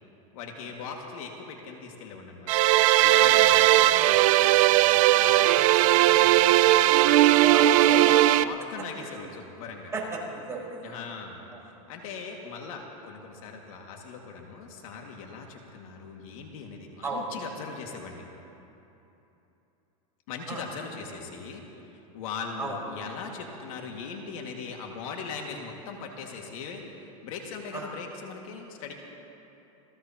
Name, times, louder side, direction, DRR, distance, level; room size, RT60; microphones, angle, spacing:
voice 1, 0.3-2.6 3.0-7.2 8.4-9.9 10.8-18.3 20.3-21.6 21.9-28.9, left 5 dB, 70° left, 1 dB, 2.1 m, -40 dB
sound 1, 2.5-8.4, right 15 dB, 65° right, 0.5 m, -19 dB
voice 2, 3.0-3.4 3.7-3.8 7.4-8.4 8.9-9.2 9.9-11.0 11.5-11.6 17.0-17.3 20.5-20.6 22.6-22.8 27.7-27.9, right 3 dB, 15° right, -5 dB, 4.7 m, -35 dB
28.0 x 16.5 x 2.9 m, 2.9 s
supercardioid pair, 140°, 18 cm